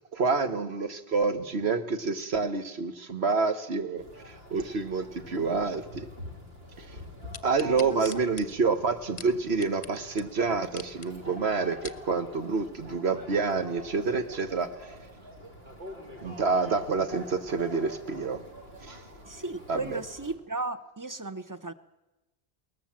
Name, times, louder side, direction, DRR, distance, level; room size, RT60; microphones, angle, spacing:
voice 1, 0.1-6.1 6.8-7.0 7.4-14.9 16.2-18.4 18.8-19.0 19.7-20.0, right 4 dB, 90° right, 9 dB, 1.6 m, -28 dB
sound 1, 4.0-20.4, left 1 dB, 70° right, 3.1 m, -46 dB
sound 2, 7.3-9.9 10.2-10.3 10.6-11.1 11.6-12.0 12.7-12.8, left 6 dB, 45° left, 0.8 m, -43 dB
voice 2, 7.6-8.1 19.2-21.7, right 2 dB, 20° right, 11 dB, 0.7 m, -35 dB
21.5 x 18.5 x 7.4 m, 1.0 s
omnidirectional pair, 1.1 m